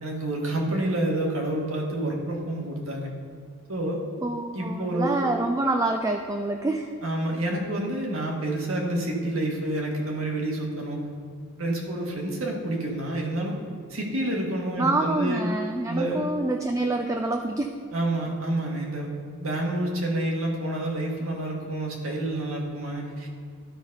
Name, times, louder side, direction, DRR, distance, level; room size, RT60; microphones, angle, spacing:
voice 1, 0.0-3.1 3.7-4.0 4.5-5.3 7.0-11.0 11.6-13.5 13.9-15.4 15.9-16.3 17.9-19.1 19.4-23.3, right 1 dB, 70° right, 0 dB, 1.7 m, -28 dB
voice 2, 4.2-6.9 14.8-17.8, right 2 dB, 15° right, 4 dB, 0.4 m, -27 dB
12.0 x 4.1 x 5.4 m, 2.2 s
head